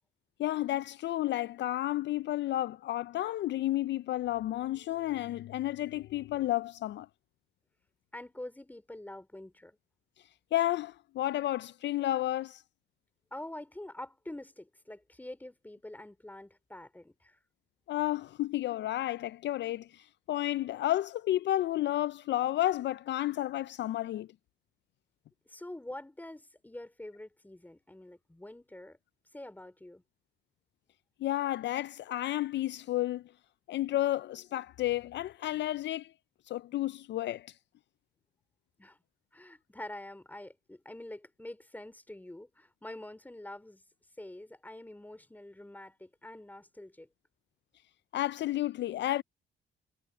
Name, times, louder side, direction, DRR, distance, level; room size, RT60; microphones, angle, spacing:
voice 1, 0.4-7.1 10.5-12.6 17.9-24.3 31.2-33.2 33.7-36.1 36.5-37.5 48.1-49.2, left 14 dB, 65° left, 0.4 m, -31 dB
voice 2, 8.1-9.8 13.3-17.4 25.5-29.0 29.3-30.0 38.8-39.0 39.3-43.8 44.2-47.1, left 1 dB, 10° left, 3.5 m, -46 dB
cardioid pair, 90°, 20 cm